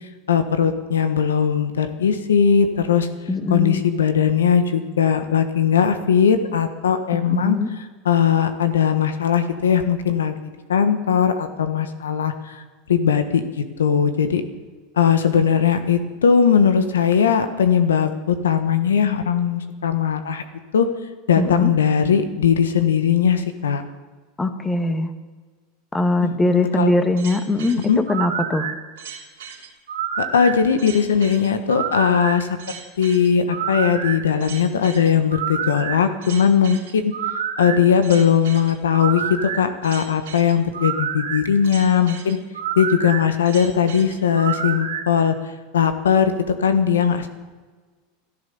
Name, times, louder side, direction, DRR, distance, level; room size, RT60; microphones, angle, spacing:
voice 1, 0.3-3.1 3.5-7.6 8.0-10.3 10.7-12.6 12.9-13.4 13.8-14.4 15.0-20.4 20.7-20.9 21.3-23.8 26.2-26.9 27.9-28.0 30.2-32.5 33.0-37.1 37.6-42.4 42.8-45.3 45.7-46.3 46.6-47.3, left 7 dB, 90° left, 9 dB, 1.4 m, -19 dB
voice 2, 3.3-3.8 7.1-7.7 21.4-21.7 24.4-25.1 25.9-27.8 28.1-28.7, left 2 dB, 15° left, 8 dB, 1.7 m, -21 dB
sound 1, 27.2-45.0, right 8 dB, 80° right, 3.1 m, -29 dB
15.0 x 14.0 x 7.0 m, 1.4 s
hypercardioid pair, 100°, 0 cm